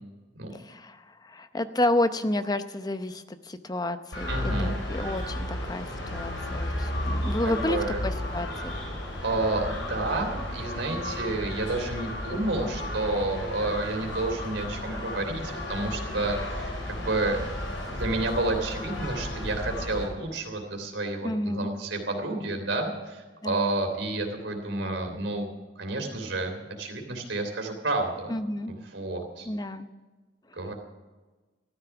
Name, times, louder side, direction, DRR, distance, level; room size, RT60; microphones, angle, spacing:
voice 1, 0.5-7.8 8.0-8.7 21.2-21.7 23.4-23.6 28.3-28.7 29.4-29.9, left 1 dB, 20° left, 10 dB, 0.7 m, -30 dB
sound 1, 4.1-20.1, left 1 dB, 90° left, 4.8 m, -33 dB
voice 2, 4.3-4.8 7.0-7.2 7.4-8.0 9.2-17.4 17.9-25.5 25.7-28.3 28.7-29.5 30.6-30.7, right 2 dB, 75° right, 3 dB, 3.2 m, -30 dB
14.5 x 13.0 x 5.9 m, 1.3 s
head